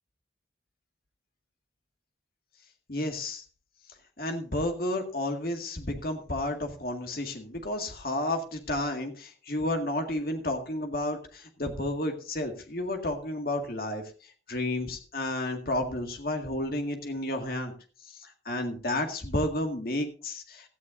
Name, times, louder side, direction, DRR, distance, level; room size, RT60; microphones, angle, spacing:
voice 1, 2.9-3.4 4.2-14.0 14.5-17.7 18.5-20.7, left 1 dB, 55° left, 4 dB, 1.9 m, -31 dB
16.5 x 13.0 x 2.6 m, 0.38 s
head